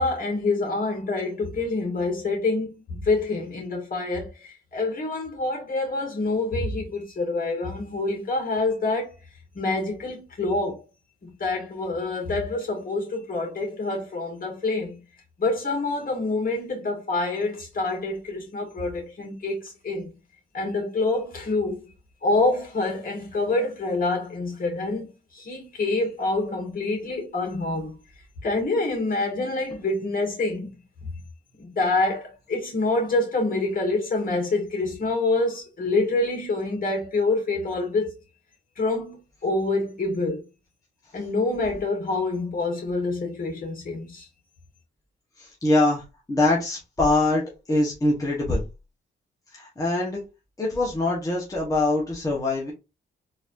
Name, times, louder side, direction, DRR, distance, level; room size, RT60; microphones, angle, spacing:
voice 1, 0.0-9.1 9.5-10.8 11.2-15.0 15.4-20.1 20.5-21.9 22.2-28.0 28.4-30.7 31.0-31.1 31.6-38.1 38.8-40.4 41.1-44.3, left 2 dB, 45° left, 2.0 m, -26 dB
voice 2, 45.4-48.6 49.5-50.2 50.6-52.7, left 2 dB, 15° left, 1.1 m, -24 dB
4.0 x 2.8 x 2.5 m
cardioid pair, 90°, 20 cm